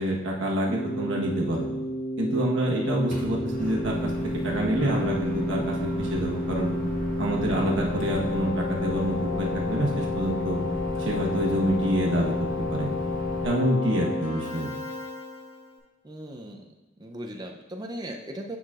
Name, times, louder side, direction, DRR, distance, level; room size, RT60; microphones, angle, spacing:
voice 1, 0.0-1.7 2.2-4.1 4.4-6.7 7.2-10.6 11.0-12.9 13.4-14.7, right 1 dB, 75° right, -2 dB, 1.2 m, -27 dB
Keyboard (musical), 0.7-15.7, left 1 dB, 90° left, 2.0 m, -32 dB
Microwave oven, 3.1-13.4, left 2 dB, 40° left, 1.2 m, -33 dB
sound 1, 4.8-11.6 11.8-12.7, right 3 dB, 75° left, 1.1 m, -43 dB
voice 2, 16.0-16.7 17.0-18.6, right 1 dB, 20° right, 3 dB, 0.5 m, -38 dB
9.1 x 5.8 x 2.4 m, 1.1 s
head